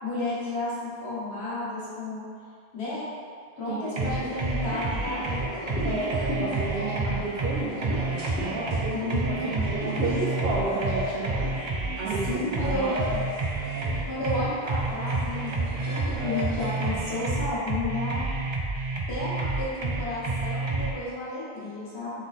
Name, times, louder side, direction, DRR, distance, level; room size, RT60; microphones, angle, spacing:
voice 1, 0.0-2.3 2.7-3.1 3.6-6.0 8.9-9.5 12.0-12.9 14.1-18.3 19.1-22.2, left 2 dB, 90° left, -9 dB, 1.5 m, -32 dB
voice 2, 3.7-4.3 5.8-8.1 8.4-11.4 12.0-13.2, right 3 dB, 80° right, -5 dB, 0.9 m, -32 dB
sound 1, 4.0-20.9, right 3 dB, 40° right, 0.4 m, -29 dB
sound 2, 4.0-17.0, equal, 55° right, 0.9 m, -37 dB
sound 3, 4.7-9.3 9.7-11.5, left 2 dB, 60° left, 1.0 m, -38 dB
3.7 x 3.2 x 4.1 m, 2.2 s
omnidirectional pair, 1.0 m